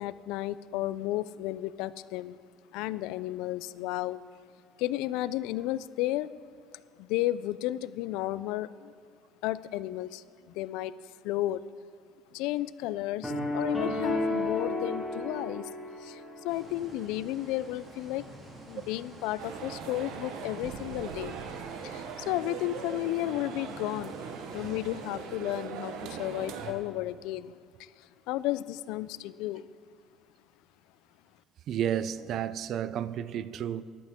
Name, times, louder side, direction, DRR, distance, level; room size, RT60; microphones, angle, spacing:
voice 1, 0.0-2.4 2.7-4.2 4.8-6.3 7.0-8.9 9.4-10.9 11.2-11.6 12.3-15.7 16.0-18.4 18.7-21.4 21.8-24.2 24.5-29.7, left 15 dB, 70° left, 0.3 m, -33 dB
sound 1, 13.2-16.5, left 2 dB, 5° left, 1.8 m, -32 dB
sound 2, 16.5-25.1, right 2 dB, 25° right, 1.9 m, -49 dB
sound 3, 19.4-26.7, right 6 dB, 65° right, 1.0 m, -40 dB
voice 2, 31.7-33.8, right 9 dB, 40° right, 0.3 m, -31 dB
14.0 x 11.5 x 3.6 m
cardioid pair, 170°, 0 cm